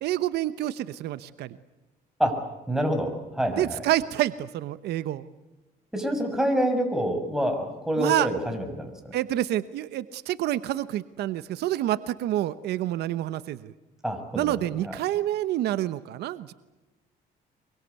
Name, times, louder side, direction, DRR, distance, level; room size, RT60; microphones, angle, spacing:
voice 1, 0.0-1.6 3.6-5.2 8.0-8.3 9.1-13.7 14.3-16.5, right 14 dB, 75° right, 14 dB, 1.0 m, -28 dB
voice 2, 2.7-3.8 5.9-9.2 14.0-15.0, equal, 5° right, 4 dB, 6.4 m, -27 dB
25.0 x 23.5 x 8.2 m, 1.1 s
cardioid pair, 110°, 17 cm